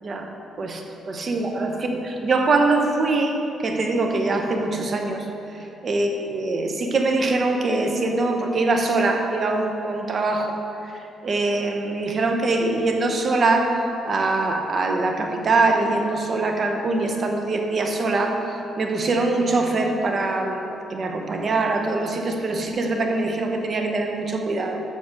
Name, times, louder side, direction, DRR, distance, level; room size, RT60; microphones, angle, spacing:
voice 1, 0.6-5.3 5.8-10.6 10.9-24.8, right 2 dB, 45° right, 3 dB, 1.0 m, -23 dB
7.4 x 6.8 x 6.4 m, 3.0 s
cardioid pair, 90°, 0 cm